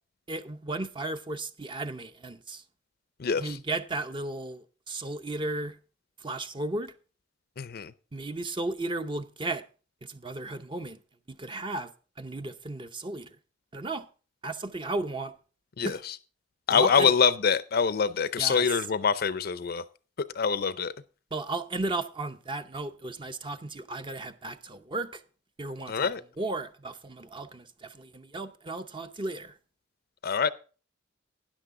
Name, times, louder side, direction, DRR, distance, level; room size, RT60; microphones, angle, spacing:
voice 1, 0.3-2.6 3.4-5.8 6.2-6.9 8.1-9.6 10.1-11.0 11.3-11.9 12.2-13.3 13.7-14.0 14.4-15.3 15.8-16.0 16.7-17.1 18.4-18.7 21.3-25.2 25.6-26.1 26.4-29.5, right 2 dB, 25° right, 0.7 m, -35 dB
voice 2, 3.2-3.6 7.6-7.9 15.8-16.1 16.7-19.8 20.4-20.9 25.9-26.2 30.2-30.5, left 6 dB, 55° left, 0.5 m, -25 dB
12.5 x 10.0 x 3.7 m
head